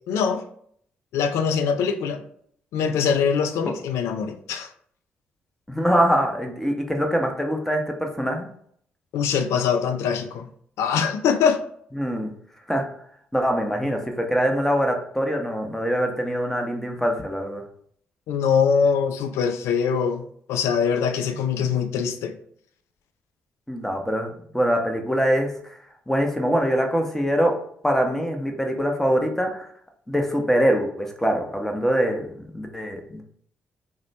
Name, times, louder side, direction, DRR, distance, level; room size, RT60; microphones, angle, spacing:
voice 1, 0.1-0.4 1.1-2.2 2.7-4.7 9.1-10.5 10.8-11.6 18.3-22.3, left 6 dB, 70° left, 7 dB, 0.4 m, -23 dB
voice 2, 5.7-8.5 12.0-12.3 12.7-12.8 13.3-17.6 23.7-25.5 26.1-27.5 27.8-29.7 30.1-33.2, equal, 5° left, 2 dB, 0.7 m, -23 dB
2.9 x 2.1 x 4.0 m, 0.64 s
hypercardioid pair, 45°, 5 cm